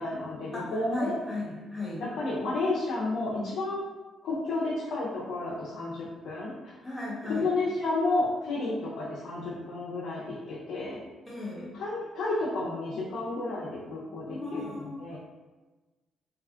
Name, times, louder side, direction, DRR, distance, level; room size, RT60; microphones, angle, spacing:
voice 1, 0.0-1.1 2.0-3.9 4.2-6.7 7.3-11.0 11.7-15.2, left 2 dB, 75° left, -7 dB, 0.7 m, -31 dB
voice 2, 0.5-2.0 6.8-7.5 11.3-11.7 14.3-15.1, left 2 dB, 10° left, -6 dB, 1.4 m, -36 dB
3.5 x 2.3 x 3.5 m, 1.2 s
cardioid pair, 90°, 0 cm